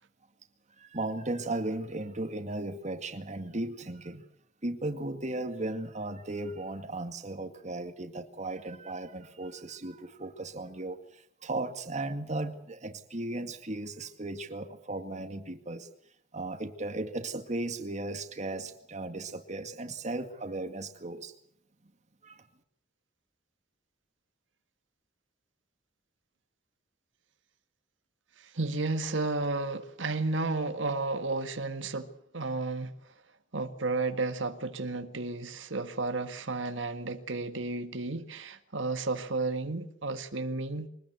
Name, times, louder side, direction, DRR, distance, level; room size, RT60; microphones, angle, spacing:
voice 1, 0.8-4.3 4.6-15.9 16.3-21.3 22.2-22.4, right 2 dB, 40° right, 2.1 m, -36 dB
voice 2, 28.4-32.9 33.5-40.9, right 3 dB, 90° right, 1.9 m, -32 dB
24.0 x 20.0 x 8.1 m
head